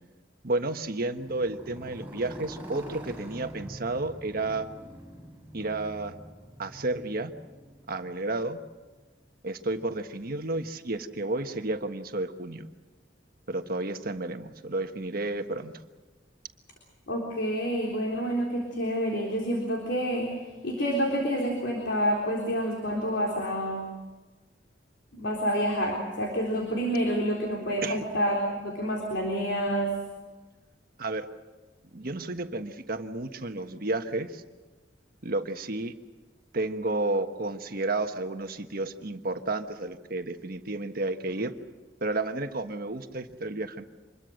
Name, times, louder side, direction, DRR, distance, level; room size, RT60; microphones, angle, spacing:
voice 1, 0.4-4.7 5.5-6.2 6.6-7.3 7.9-8.6 9.4-12.7 13.5-15.7 27.8-28.0 31.0-31.3 31.9-34.4 35.2-35.9 36.5-41.5 42.0-43.8, right 2 dB, 55° right, 7 dB, 1.3 m, -31 dB
Motorcycle, 1.0-9.0, right 1 dB, 10° right, 8.0 m, -45 dB
voice 2, 17.1-23.9 25.1-30.0, equal, 70° left, 0 dB, 3.9 m, -28 dB
26.0 x 21.5 x 6.5 m, 1.3 s
head